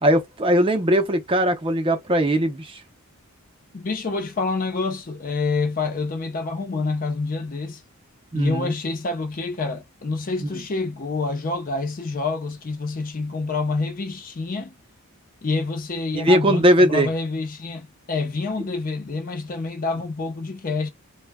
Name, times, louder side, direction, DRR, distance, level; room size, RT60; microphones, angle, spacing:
voice 1, 0.0-2.8 8.3-8.7 16.1-17.1, equal, 25° right, 0.5 m, -19 dB
voice 2, 3.7-7.8 8.3-14.7 15.4-20.9, left 3 dB, 40° left, 0.5 m, -27 dB
2.1 x 2.1 x 3.4 m
head